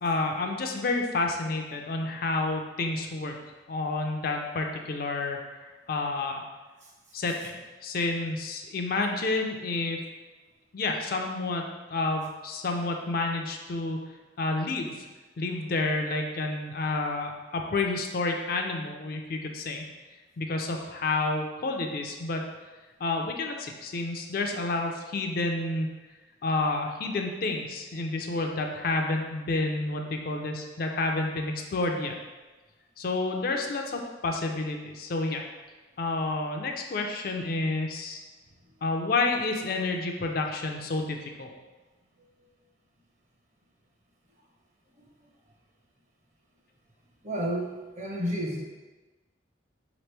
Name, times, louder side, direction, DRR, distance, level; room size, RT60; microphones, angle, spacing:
voice 1, 0.0-3.4 3.7-6.4 7.1-10.0 10.7-11.6 11.9-14.0 14.4-15.1 15.4-19.8 20.4-22.4 23.0-25.9 26.4-32.1 33.0-35.4 36.0-38.2 38.8-41.5, left 3 dB, 50° left, 2 dB, 0.4 m, -29 dB
voice 2, 47.2-48.6, equal, 40° right, -1 dB, 0.7 m, -31 dB
4.8 x 3.0 x 3.3 m, 1.2 s
head